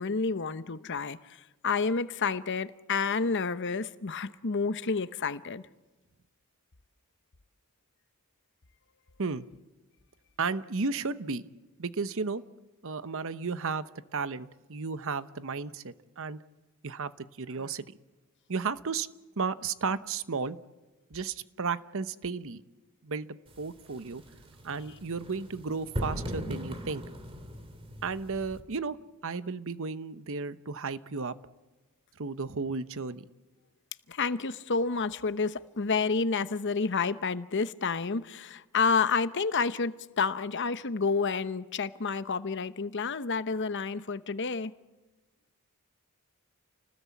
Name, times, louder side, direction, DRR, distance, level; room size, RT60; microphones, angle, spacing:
voice 1, 0.0-5.6 34.1-44.7, left 4 dB, 55° left, 0.9 m, -29 dB
voice 2, 10.4-11.5 11.8-12.4 12.8-13.8 14.1-16.4 16.8-17.8 18.5-19.1 19.4-20.6 21.1-22.6 23.0-23.3 23.6-24.2 24.6-27.0 28.0-29.0 29.2-31.3 32.2-33.2, right 4 dB, 60° right, 0.9 m, -33 dB
sound 1, 23.5-28.6, equal, 25° right, 2.3 m, -39 dB
29.0 x 19.5 x 8.4 m
head